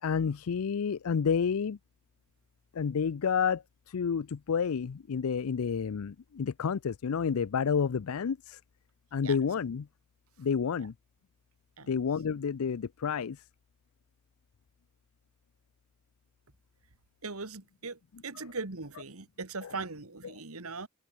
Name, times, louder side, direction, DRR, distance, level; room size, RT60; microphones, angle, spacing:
voice 1, 0.0-1.8 2.7-8.6 9.1-9.9 10.4-10.9 11.9-13.4 19.6-19.7, left 6 dB, 75° left, 0.5 m, -30 dB
voice 2, 17.2-20.9, right 4 dB, 75° right, 2.0 m, -40 dB
head